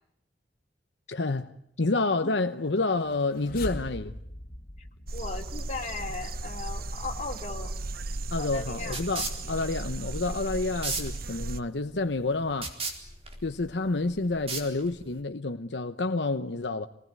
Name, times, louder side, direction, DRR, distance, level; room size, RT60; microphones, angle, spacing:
voice 1, 1.1-1.5 1.8-4.1 8.3-12.8 13.4-16.9, left 3 dB, 80° left, 0.9 m, -29 dB
sound 1, 2.9-8.2, left 1 dB, 55° left, 2.4 m, -42 dB
voice 2, 5.1-7.7 8.4-9.0, left 3 dB, 40° left, 3.2 m, -37 dB
sound 2, 5.1-11.6, right 2 dB, 60° right, 1.1 m, -36 dB
sound 3, 7.6-15.2, right 3 dB, 35° right, 4.2 m, -38 dB
26.5 x 19.5 x 9.6 m
head